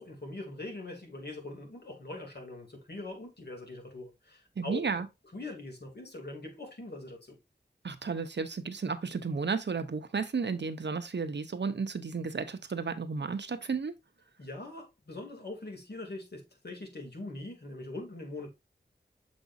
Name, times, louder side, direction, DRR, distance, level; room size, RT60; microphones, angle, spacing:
voice 1, 0.0-4.8 5.3-7.4 14.4-18.5, left 2 dB, 60° left, 2.9 m, -42 dB
voice 2, 4.6-5.1 7.8-13.9, right 5 dB, 70° right, 0.8 m, -33 dB
7.2 x 5.3 x 2.6 m
wide cardioid pair, 75°, 19 cm